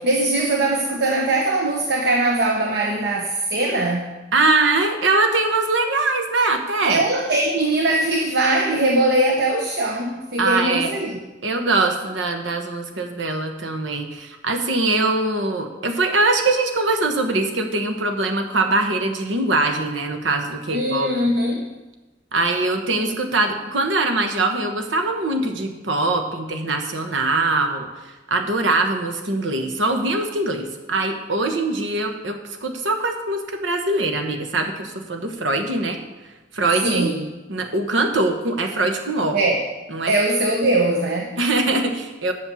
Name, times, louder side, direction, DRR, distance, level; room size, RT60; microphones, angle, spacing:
voice 1, 0.0-4.1 6.8-11.2 20.7-21.7 36.8-37.3 39.3-39.7 40.1-41.4, right 2 dB, 60° right, 1 dB, 0.9 m, -21 dB
voice 2, 4.3-7.0 10.4-10.9 11.4-21.1 22.3-36.0 36.5-37.1 37.5-39.4 39.9-40.1 41.4-42.3, right 2 dB, 90° right, 5 dB, 1.2 m, -22 dB
7.5 x 6.5 x 7.0 m, 1.1 s
head